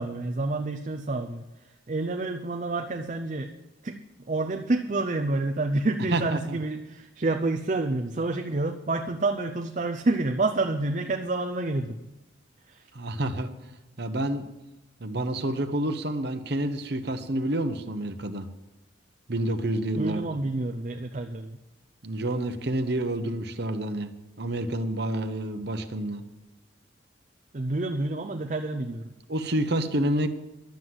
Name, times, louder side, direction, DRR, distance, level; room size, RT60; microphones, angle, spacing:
voice 1, 0.0-3.5 3.8-4.0 4.3-12.0 12.7-12.9 20.0-21.6 27.5-29.1, right 2 dB, 40° right, 6 dB, 0.6 m, -28 dB
voice 2, 6.1-6.6 12.9-13.5 14.0-14.4 15.0-18.5 19.3-20.2 22.0-24.1 24.4-26.2 29.3-30.3, right 1 dB, 55° right, 9 dB, 1.0 m, -28 dB
11.5 x 7.8 x 7.9 m, 1.0 s
head